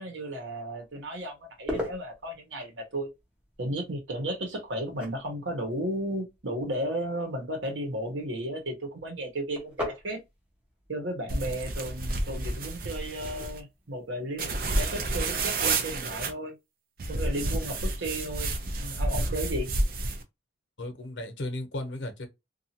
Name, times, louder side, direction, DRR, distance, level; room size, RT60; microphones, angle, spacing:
voice 1, 0.0-3.1 3.6-10.2 10.9-16.5 17.1-18.5 18.8-19.7, right 1 dB, 90° right, 1.1 m, -34 dB
sound 1, 0.8-15.9, left 1 dB, 5° right, 0.9 m, -44 dB
sound 2, 11.3-13.6 14.4-16.3 17.0-20.2, right 2 dB, 50° right, 0.5 m, -30 dB
voice 2, 20.8-22.3, left 1 dB, 80° left, 0.8 m, -35 dB
2.7 x 2.4 x 2.7 m
head